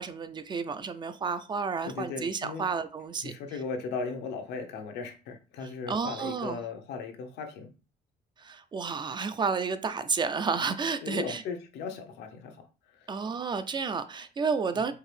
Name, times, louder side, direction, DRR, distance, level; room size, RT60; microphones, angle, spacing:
voice 1, 0.0-3.3 5.6-6.6 8.4-11.4 13.1-14.9, right 5 dB, 25° right, 0.4 m, -31 dB
voice 2, 1.8-2.6 3.2-7.7 11.0-12.6 12.9-13.1 14.7-14.8, left 4 dB, 80° left, 0.8 m, -37 dB
4.6 x 2.6 x 3.3 m
cardioid pair, 110°, 17 cm